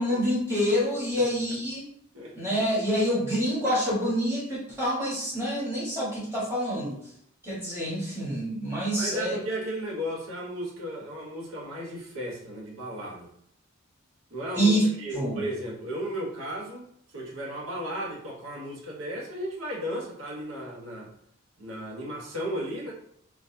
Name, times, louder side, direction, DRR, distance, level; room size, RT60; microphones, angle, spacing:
voice 1, 0.0-1.9 2.3-7.0 7.4-9.4 14.5-14.8 15.1-15.4, equal, 10° right, -7 dB, 1.3 m, -27 dB
voice 2, 9.0-13.3 14.3-16.9 17.1-21.1 21.6-22.9, equal, 75° right, -2 dB, 1.0 m, -35 dB
3.9 x 2.3 x 2.8 m, 0.69 s
head